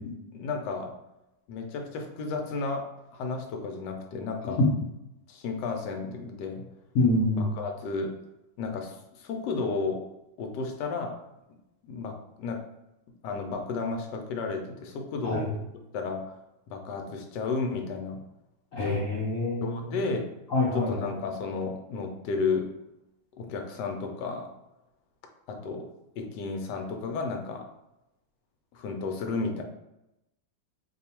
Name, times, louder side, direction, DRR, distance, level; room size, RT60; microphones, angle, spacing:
voice 1, 0.3-0.9 1.5-4.6 5.3-6.6 7.3-8.1 8.6-10.0 10.4-11.2 11.9-12.6 13.2-15.5 15.9-16.3 16.7-18.2 18.7-19.0 19.6-20.3 20.7-22.7 23.4-24.5 25.5-25.9 26.2-27.7 28.7-29.6, left 4 dB, 75° left, 4 dB, 1.2 m, -33 dB
voice 2, 6.9-7.5 15.2-15.4 18.7-19.8 20.5-20.9, left 2 dB, 60° left, -6 dB, 0.9 m, -25 dB
3.0 x 2.3 x 4.2 m, 0.90 s
omnidirectional pair, 2.0 m